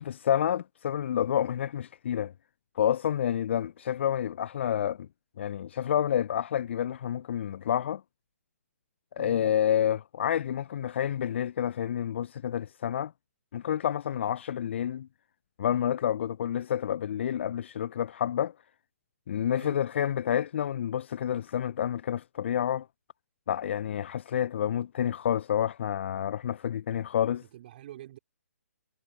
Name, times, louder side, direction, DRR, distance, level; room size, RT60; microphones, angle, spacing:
voice 1, 0.0-2.3 2.8-5.1 5.4-8.0 9.2-13.1 13.5-15.1 15.6-18.5 19.3-22.9 23.5-27.4, left 10 dB, 50° left, 0.4 m, -29 dB
voice 2, 9.2-9.5 19.5-19.8 27.5-28.2, right 13 dB, 40° right, 3.3 m, -46 dB
figure-of-eight pair, 135°, 8 cm